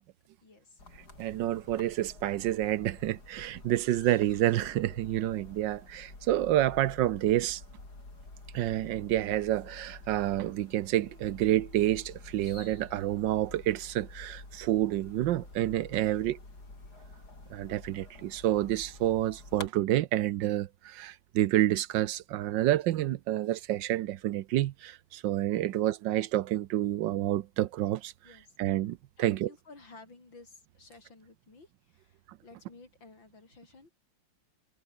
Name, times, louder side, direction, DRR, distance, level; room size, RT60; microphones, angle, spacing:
voice 1, 0.4-0.9 16.0-16.3 25.6-25.9 28.2-28.6 29.2-33.9, left 3 dB, 75° left, 5.6 m, -54 dB
sound 1, 0.8-19.7, left 2 dB, 55° left, 6.5 m, -49 dB
voice 2, 1.2-7.6 8.5-16.3 17.5-28.1 28.6-29.5, right 14 dB, 75° right, 1.3 m, -29 dB
omnidirectional pair, 2.1 m